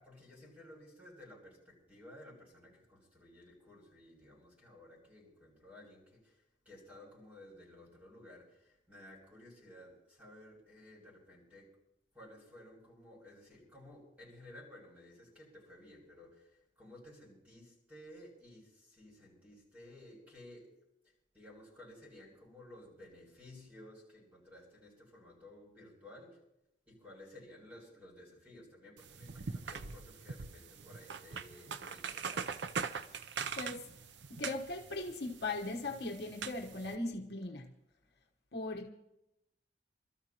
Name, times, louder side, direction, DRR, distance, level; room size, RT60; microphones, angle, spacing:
voice 1, 0.0-11.7 12.1-20.7 21.0-26.4 26.9-32.5, left 1 dB, 10° right, 7.5 m, -55 dB
sound 1, 29.0-37.0, right 5 dB, 75° right, 0.6 m, -42 dB
voice 2, 33.6-33.9 34.3-37.7 38.5-38.9, left 2 dB, 60° left, 1.2 m, -39 dB
29.0 x 13.0 x 3.0 m
head